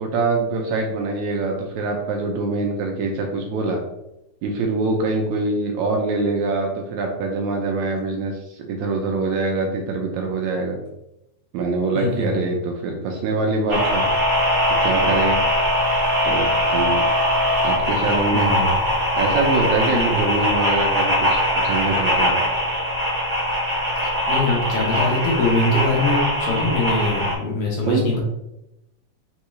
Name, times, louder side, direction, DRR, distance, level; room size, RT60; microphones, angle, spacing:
voice 1, 0.0-3.8 4.4-10.8 11.5-14.1 14.8-15.4 16.2-17.1 17.6-18.6 19.2-22.4 27.9-28.2, right 3 dB, 80° right, 1 dB, 1.8 m, -24 dB
voice 2, 11.9-12.4 18.3-18.7 19.9-20.2 24.0-28.2, left 2 dB, 70° left, -2 dB, 1.4 m, -23 dB
sound 1, 13.7-27.3, equal, 55° right, 0.5 m, -21 dB
4.5 x 3.6 x 3.1 m, 0.87 s
omnidirectional pair, 3.6 m